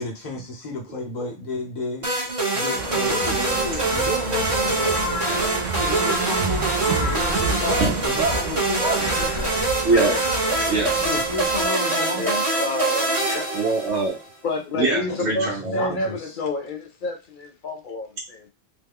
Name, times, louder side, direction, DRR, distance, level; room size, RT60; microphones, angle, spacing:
voice 1, 0.0-2.2 2.5-9.5 11.0-12.4 15.1-16.4, left 3 dB, 40° left, 0.9 m, -32 dB
sound 1, 2.0-14.2, right 2 dB, 25° right, 1.0 m, -24 dB
sound 2, 2.8-11.7, right 4 dB, 80° right, 0.4 m, -30 dB
Crow, 3.0-11.5, left 4 dB, 85° left, 1.1 m, -38 dB
voice 2, 9.8-10.2 10.7-11.0 13.5-14.2 14.7-16.0, right 3 dB, 65° right, 1.0 m, -23 dB
voice 3, 12.2-13.5 14.4-18.5, left 2 dB, 55° left, 0.6 m, -29 dB
3.0 x 2.2 x 3.5 m
omnidirectional pair, 1.3 m